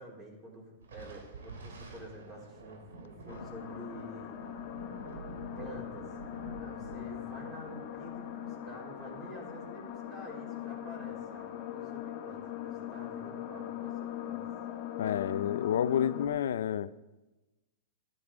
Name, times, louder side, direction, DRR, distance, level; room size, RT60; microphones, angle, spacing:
voice 1, 0.0-4.4 5.6-6.1 6.6-14.5, right 1 dB, 25° right, -3 dB, 3.9 m, -48 dB
Thunder, 0.8-9.6, right 3 dB, 90° right, 2.6 m, -49 dB
sound 1, 3.3-16.3, left 11 dB, 45° left, 1.9 m, -41 dB
voice 2, 15.0-16.9, left 9 dB, 75° left, 17 dB, 0.5 m, -29 dB
12.0 x 10.5 x 4.9 m, 1.1 s
hypercardioid pair, 135°, 0 cm